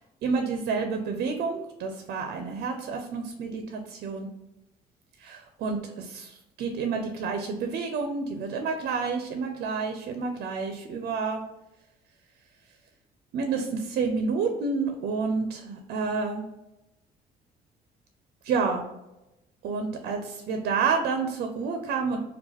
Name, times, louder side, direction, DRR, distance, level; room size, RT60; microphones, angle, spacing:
voice 1, 0.2-4.3 5.2-11.4 13.3-16.4 18.4-18.9 19.6-22.2, right 5 dB, 70° right, 5 dB, 0.6 m, -29 dB
4.7 x 2.4 x 4.2 m, 0.94 s
cardioid pair, 110°, 17 cm